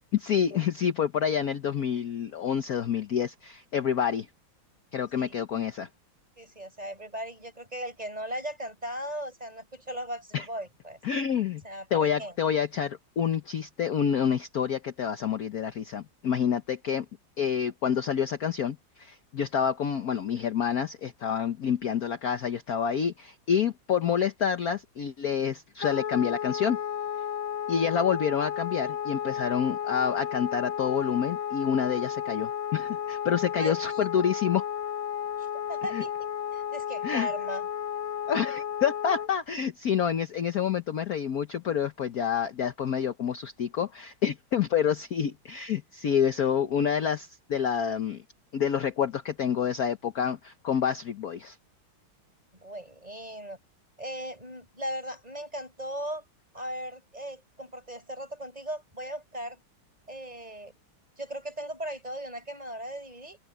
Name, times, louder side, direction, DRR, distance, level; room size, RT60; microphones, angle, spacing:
voice 1, 0.1-4.3 4.9-5.9 10.3-10.5 11.0-11.6 11.9-17.0 17.4-26.8 27.7-34.6 35.9-36.0 37.0-37.3 38.3-48.2 48.5-51.6, left 8 dB, 55° left, 1.3 m, -28 dB
voice 2, 6.4-11.0 11.6-12.3 33.6-34.1 35.4-37.7 52.5-53.6 54.0-56.2 56.5-59.6 60.1-60.7 61.2-63.4, equal, 15° right, 6.2 m, -38 dB
Wind instrument woodwind instrument, 25.8-39.3, left 9 dB, 80° left, 1.9 m, -33 dB
open air
omnidirectional pair, 2.3 m